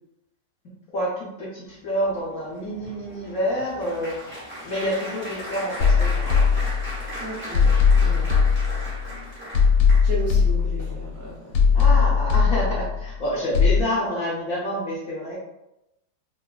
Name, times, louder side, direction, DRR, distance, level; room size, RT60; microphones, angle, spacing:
voice 1, 0.9-4.2 4.6-6.5 8.1-8.3 11.7-15.4, equal, 60° left, -6 dB, 1.0 m, -28 dB
Applause, 2.1-10.4 11.0-11.3 11.5-11.7, equal, 15° right, 0.4 m, -37 dB
sound 1, 5.8-7.1 7.5-9.1 9.5-11.1 11.5-13.1 13.5-13.8, left 5 dB, 80° left, 1.3 m, -19 dB
voice 2, 7.2-7.7 8.0-8.2 10.0-12.0, right 1 dB, 55° right, -7 dB, 1.0 m, -34 dB
3.7 x 2.4 x 2.3 m, 0.89 s
omnidirectional pair, 2.0 m